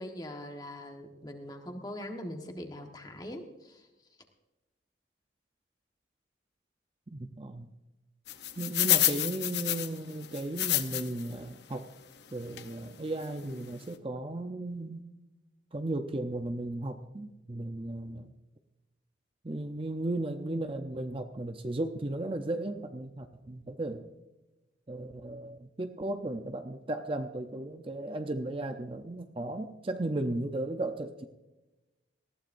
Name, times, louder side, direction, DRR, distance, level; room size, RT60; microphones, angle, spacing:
voice 1, 0.0-3.9, left 1 dB, 20° left, 4 dB, 1.3 m, -42 dB
voice 2, 7.1-7.7 8.6-11.9 12.3-15.0 15.7-18.3 19.4-24.1 24.9-31.3, right 2 dB, 30° right, 7 dB, 0.6 m, -35 dB
sound 1, 8.3-11.3 11.7-11.8 12.6-12.7 13.2-13.3 13.5-13.7, left 13 dB, 60° left, 0.9 m, -29 dB
19.0 x 14.5 x 2.6 m, 1.1 s
head